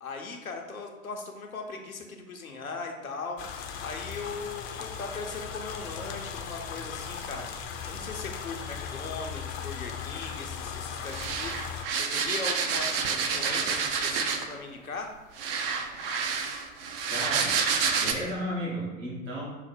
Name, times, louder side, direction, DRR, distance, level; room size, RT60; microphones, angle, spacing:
voice 1, 0.0-3.4 3.8-15.1, left 4 dB, 90° left, 2 dB, 0.7 m, -39 dB
sound 1, 3.4-11.8, left 6 dB, 30° left, 0.5 m, -38 dB
sound 2, 11.1-14.6 15.4-18.1, right 6 dB, 45° right, 0.5 m, -28 dB
voice 2, 17.1-17.6 18.0-19.4, equal, 65° right, -6 dB, 1.5 m, -33 dB
5.7 x 2.1 x 4.3 m, 1.1 s
figure-of-eight pair, 90°, 41 cm